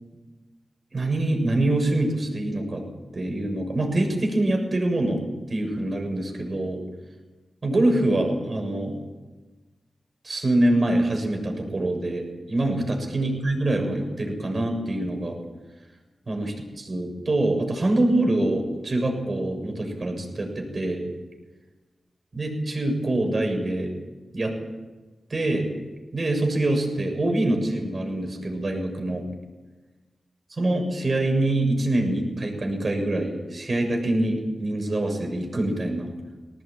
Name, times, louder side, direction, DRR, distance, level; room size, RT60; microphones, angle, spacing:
voice 1, 0.9-2.8 3.1-5.2 5.5-6.8 7.6-9.0 10.2-15.4 16.3-21.0 22.3-23.9 24.3-24.5 25.3-25.7 26.1-29.2 30.6-36.1, right 1 dB, 45° right, 3 dB, 7.2 m, -25 dB
21.0 x 19.0 x 9.1 m, 1.2 s
wide cardioid pair, 80°, 0 cm